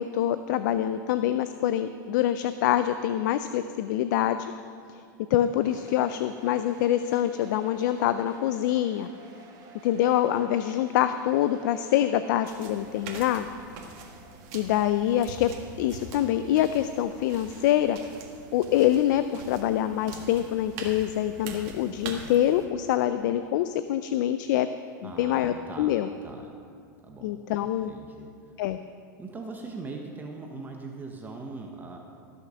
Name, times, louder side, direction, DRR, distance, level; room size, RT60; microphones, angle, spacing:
voice 1, 0.0-4.5 4.9-5.0 5.3-9.1 9.8-13.5 14.5-15.5 15.8-18.0 18.5-24.7 25.0-26.1 27.2-27.9 28.6-28.8, left 12 dB, 65° left, 11 dB, 0.5 m, -25 dB
sound 1, 5.6-18.5, right 3 dB, 35° right, 1.7 m, -52 dB
sound 2, 12.4-22.6, right 3 dB, 55° right, 1.9 m, -43 dB
voice 2, 25.0-26.5 27.0-27.4 27.9-28.3 29.2-32.0, right 3 dB, 15° right, 2 dB, 1.0 m, -40 dB
14.0 x 6.6 x 6.3 m, 2.3 s
hypercardioid pair, 120°, 11 cm